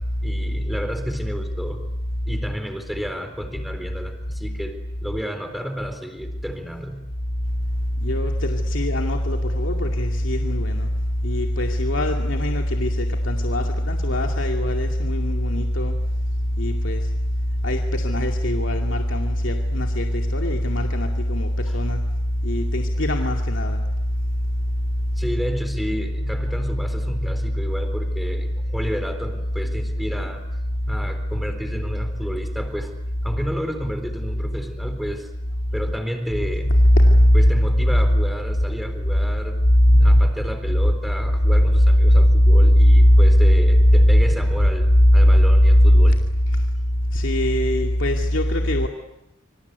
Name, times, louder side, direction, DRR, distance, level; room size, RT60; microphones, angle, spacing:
voice 1, 0.2-1.8 2.3-7.0 21.7-21.8 25.2-30.4 30.9-32.9 33.2-35.3 35.7-36.8 37.3-39.6 39.9-46.2, equal, ahead, 6 dB, 4.0 m, -31 dB
voice 2, 8.0-10.9 11.2-16.0 16.6-17.0 17.6-22.0 22.4-23.8 36.8-37.5 37.8-37.9 39.9-40.0 42.9-43.2 47.1-48.9, equal, 85° left, 2 dB, 2.4 m, -21 dB
26.5 x 25.5 x 8.3 m, 0.87 s
head